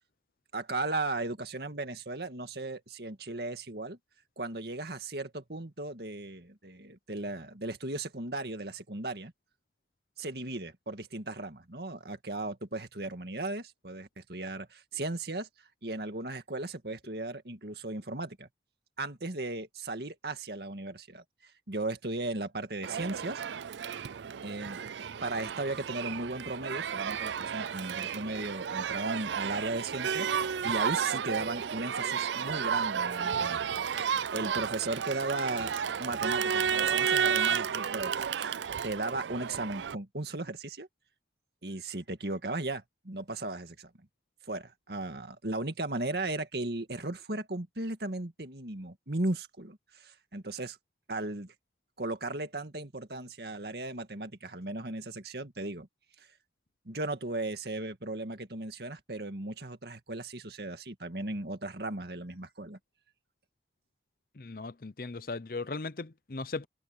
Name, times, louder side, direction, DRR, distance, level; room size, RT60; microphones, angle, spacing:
voice 1, 0.5-4.0 4.4-9.3 10.2-15.5 15.8-18.5 19.0-23.4 24.4-24.9 25.2-35.7 36.0-38.5 38.8-40.9 41.6-43.9 44.5-50.8 51.1-51.5 52.0-55.9 56.2-56.3 56.9-62.8, right 2 dB, 65° right, 2.0 m, -36 dB
Crowd, 22.8-39.9, right 7 dB, 85° right, 0.5 m, -32 dB
voice 2, 64.3-66.7, left 3 dB, 50° left, 0.7 m, -37 dB
head